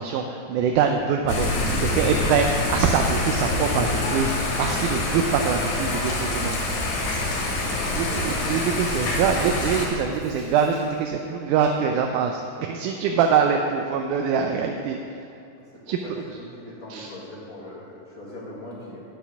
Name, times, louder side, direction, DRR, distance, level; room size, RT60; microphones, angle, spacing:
voice 1, 0.0-1.6 1.9-4.3 4.6-6.6 7.9-15.0 15.9-16.0 16.9-17.1, right 6 dB, 85° right, 3 dB, 2.0 m, -24 dB
Thunder / Rain, 1.3-9.9, left 2 dB, 70° left, 2.8 m, -26 dB
Drum kit / Drum, 5.4-11.0, right 1 dB, 55° right, 0.6 m, -44 dB
voice 2, 7.6-8.7 15.6-19.0, left 1 dB, 40° left, -5 dB, 1.3 m, -41 dB
8.9 x 7.0 x 5.8 m, 2.6 s
omnidirectional pair, 3.5 m